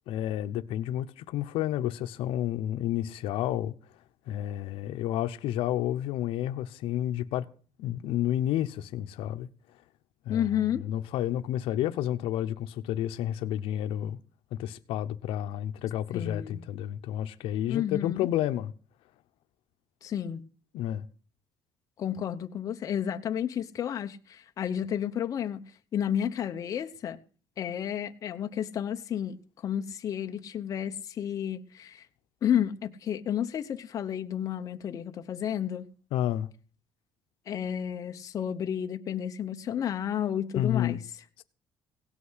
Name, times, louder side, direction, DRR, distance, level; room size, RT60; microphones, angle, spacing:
voice 1, 0.1-3.7 4.3-7.5 7.8-9.5 10.3-10.5 10.8-14.2 14.5-18.7 20.7-21.1 36.1-36.5 40.5-41.0 41.4-41.5, left 12 dB, 85° left, 0.8 m, -30 dB
voice 2, 10.3-10.8 16.1-16.6 17.7-18.3 20.0-20.4 22.0-25.6 25.9-27.2 27.6-29.4 29.6-32.1 32.4-35.8 37.5-41.0, left 9 dB, 40° left, 0.8 m, -31 dB
17.0 x 6.0 x 8.0 m
cardioid pair, 165°, 9 cm